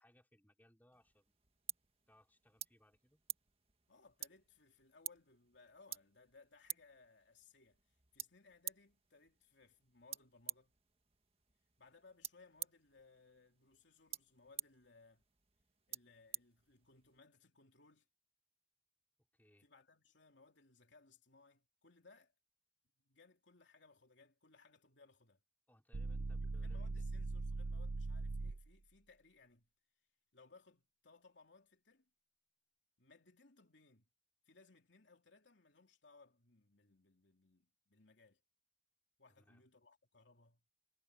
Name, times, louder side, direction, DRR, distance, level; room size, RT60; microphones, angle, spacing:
voice 1, 0.0-1.4 2.1-3.2 19.2-19.7 25.7-26.9 27.4-27.6 39.3-39.7, equal, 10° left, 4.1 m, -69 dB
sound 1, 0.9-17.2, right 10 dB, 35° right, 1.7 m, -51 dB
voice 2, 3.9-10.7 11.8-15.2 15.9-18.1 19.6-22.3 23.0-25.4 26.4-29.7 30.3-32.1 33.0-34.1 34.5-38.4 39.2-40.6, left 3 dB, 85° left, 3.1 m, -65 dB
sound 2, 25.9-28.7, right 3 dB, 65° right, 0.6 m, -41 dB
head